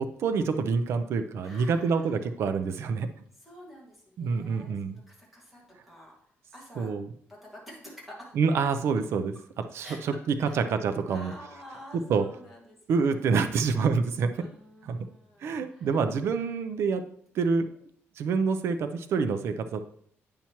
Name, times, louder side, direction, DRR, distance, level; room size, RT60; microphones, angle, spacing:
voice 1, 0.0-3.1 4.2-5.0 6.8-7.1 8.4-9.3 9.7-11.3 12.1-12.2 12.9-14.4 14.8-15.0 15.4-17.0 17.3-17.6 18.2-19.8, right 5 dB, 65° right, 8 dB, 0.5 m, -27 dB
voice 2, 1.4-2.2 3.4-6.1 6.5-6.9 7.3-8.4 9.8-10.1 10.4-10.6 11.1-13.3 14.4-16.0, equal, 5° right, -4 dB, 1.9 m, -49 dB
8.7 x 5.7 x 3.0 m, 0.63 s
cardioid pair, 155°, 5 cm